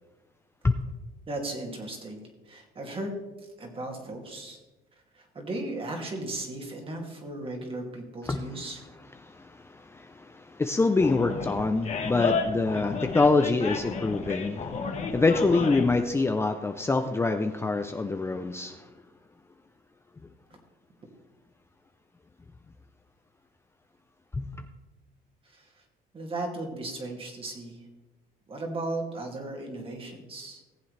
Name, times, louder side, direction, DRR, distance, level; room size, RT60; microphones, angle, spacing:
voice 1, 1.3-3.1 3.6-4.6 5.1-8.8 25.5-25.6 26.1-27.8 28.5-30.6, right 2 dB, 30° right, 2 dB, 2.4 m, -36 dB
voice 2, 9.2-18.9 24.3-24.6, left 3 dB, 15° left, 6 dB, 0.5 m, -26 dB
Animal, 11.0-16.0, left 5 dB, 40° left, 1.4 m, -32 dB
18.0 x 7.7 x 3.3 m, 1.1 s
cardioid pair, 110°, 17 cm